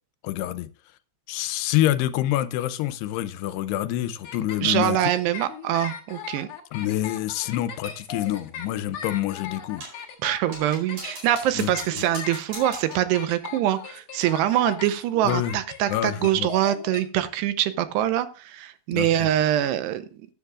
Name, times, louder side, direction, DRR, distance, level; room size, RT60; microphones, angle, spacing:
voice 1, 0.2-0.7 1.3-5.0 6.7-9.8 11.6-11.7 15.2-15.6 15.9-16.5 18.9-19.3, left 13 dB, 85° left, 12 dB, 2.7 m, -27 dB
sound 1, 4.2-17.0, left 7 dB, 60° left, 1.4 m, -38 dB
voice 2, 4.6-6.5 10.2-20.1, right 12 dB, 85° right, 12 dB, 2.9 m, -24 dB
sound 2, 9.8-10.1 10.5-13.1, right 2 dB, 45° right, 5.9 m, -41 dB
15.0 x 10.5 x 2.4 m, 0.35 s
omnidirectional pair, 4.8 m